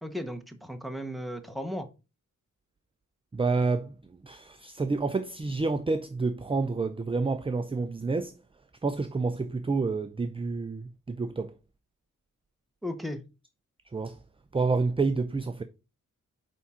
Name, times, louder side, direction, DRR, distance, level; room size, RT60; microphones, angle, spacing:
voice 1, 0.0-1.9 12.8-13.2, left 1 dB, ahead, 0.8 m, -35 dB
voice 2, 3.3-8.4 8.8-11.5 13.9-14.2 14.5-15.6, right 3 dB, 20° right, 0.4 m, -29 dB
8.8 x 3.6 x 4.2 m
wide cardioid pair, 155°, 32 cm